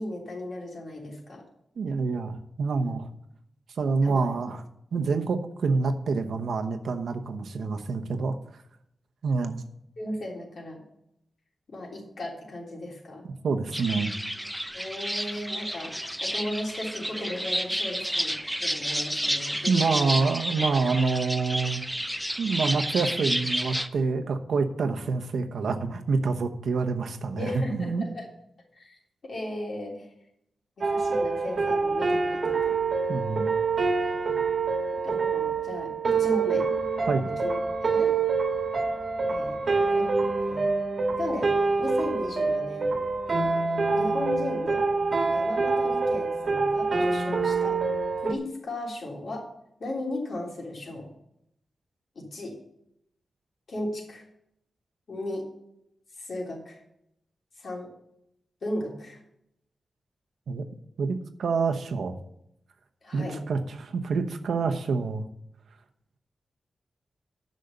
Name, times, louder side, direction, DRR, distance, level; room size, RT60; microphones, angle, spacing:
voice 1, 0.0-1.4 2.8-3.0 4.0-4.3 10.0-10.8 11.7-13.2 14.7-20.2 27.4-28.2 28.7-29.0 29.2-30.1 30.8-32.7 34.2-34.3 35.0-36.7 37.4-37.5 37.8-38.1 39.3-39.6 39.9-40.1 40.4-40.7 41.2-42.9 43.9-44.8 45.3-47.8 48.2-49.5 49.8-51.1 52.1-52.6 53.7-54.2 55.1-55.5 56.2-56.8 57.6-57.9 58.6-59.2 63.0-63.4, left 1 dB, 55° left, -1 dB, 3.4 m, -36 dB
voice 2, 1.8-3.1 3.8-4.6 4.9-8.4 9.2-9.6 13.4-14.1 19.7-21.8 22.4-28.1 33.1-33.5 37.1-37.3 60.5-60.6 61.0-62.1 63.1-65.2, right 4 dB, 85° right, 6 dB, 1.0 m, -27 dB
sound 1, 13.7-23.9, equal, ahead, 0.5 m, -31 dB
sound 2, 30.8-48.3, right 4 dB, 45° right, 1.5 m, -26 dB
10.5 x 6.5 x 6.8 m, 0.77 s
wide cardioid pair, 170°, 0 cm